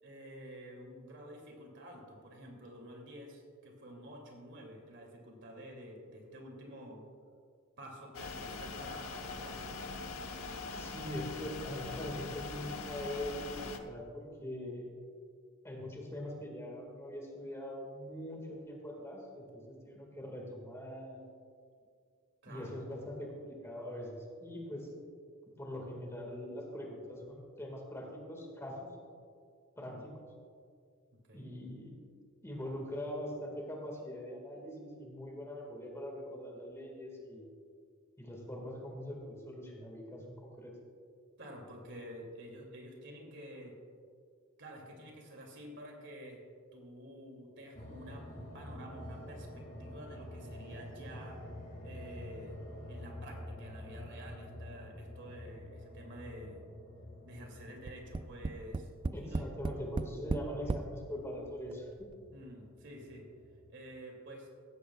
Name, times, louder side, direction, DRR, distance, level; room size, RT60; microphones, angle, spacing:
voice 1, 0.0-7.0 7.8-9.8 22.4-22.8 29.8-30.0 31.3-31.5 41.4-43.8 44.6-46.4 46.7-51.6 51.8-52.6 52.9-56.6 57.2-58.9 59.2-59.5 62.3-63.3 63.7-64.5, equal, 60° right, 0 dB, 2.6 m, -50 dB
sound 1, 8.1-13.8, left 4 dB, 80° left, 1.0 m, -42 dB
voice 2, 10.7-14.9 15.6-21.2 22.5-24.9 25.6-28.9 29.8-30.1 31.3-32.0 32.4-37.5 38.2-40.7 59.1-62.2, equal, 15° left, 0 dB, 1.9 m, -42 dB
sound 2, 47.7-63.8, left 1 dB, 40° left, 2.0 m, -49 dB
Tap, 57.9-60.9 61.7-61.8 62.1-62.2, right 3 dB, 25° right, 0.3 m, -35 dB
17.0 x 14.5 x 2.4 m, 2.3 s
head